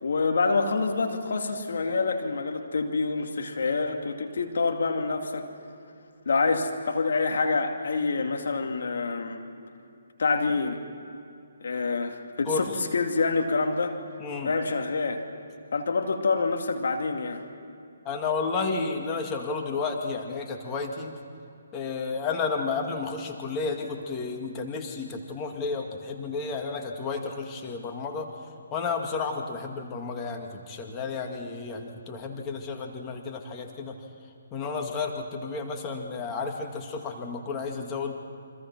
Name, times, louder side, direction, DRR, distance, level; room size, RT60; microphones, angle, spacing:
voice 1, 0.0-5.5 6.3-9.4 10.2-10.8 11.6-14.0 14.4-15.2 15.7-17.4, left 4 dB, 65° left, 4 dB, 2.4 m, -27 dB
voice 2, 14.2-14.5 18.1-21.2 21.7-28.3 28.7-34.0 34.5-38.1, left 4 dB, 20° left, 2 dB, 2.1 m, -32 dB
29.0 x 25.0 x 6.0 m, 2.6 s
figure-of-eight pair, 140°, 0 cm